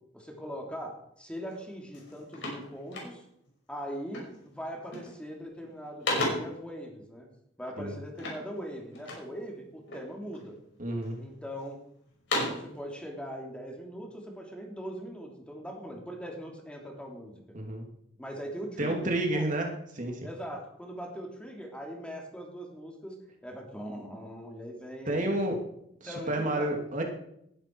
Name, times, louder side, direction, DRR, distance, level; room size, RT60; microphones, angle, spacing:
voice 1, 0.1-3.2 3.7-7.3 7.6-10.6 11.2-11.8 12.5-17.4 18.2-19.5 20.2-23.1 23.4-25.4 26.1-26.7, equal, 5° left, 1 dB, 2.9 m, -41 dB
sound 1, 1.5-1.6 1.9-3.5 4.1-4.4 4.8-5.3 5.6-6.6 8.2-9.4 9.9-10.5 11.0-11.7 12.1-12.7, left 2 dB, 70° left, 5.8 m, -35 dB
voice 2, 10.8-11.2 17.5-17.8 18.8-19.7 19.9-20.2 25.1-25.6 26.0-27.0, right 1 dB, 45° right, 2 dB, 2.7 m, -30 dB
19.5 x 11.5 x 4.7 m, 0.76 s
head